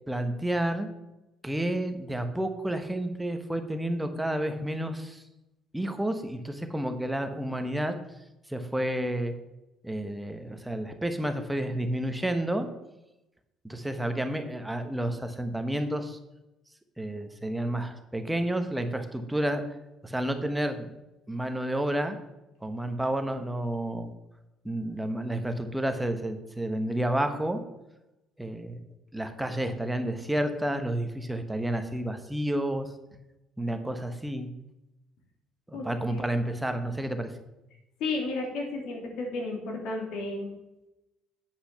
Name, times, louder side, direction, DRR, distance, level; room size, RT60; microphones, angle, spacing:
voice 1, 0.1-0.9 1.4-5.2 5.7-7.9 8.5-9.3 9.8-12.7 13.6-16.2 17.0-19.6 20.0-20.9 21.3-22.2 22.6-24.1 24.6-27.6 28.4-28.8 29.1-32.9 33.6-34.5 35.7-37.3, right 1 dB, 5° right, 7 dB, 1.1 m, -30 dB
voice 2, 35.7-36.2 38.0-40.5, left 3 dB, 75° left, 0 dB, 2.7 m, -33 dB
8.8 x 5.5 x 5.8 m, 0.96 s
cardioid pair, 90°, 0 cm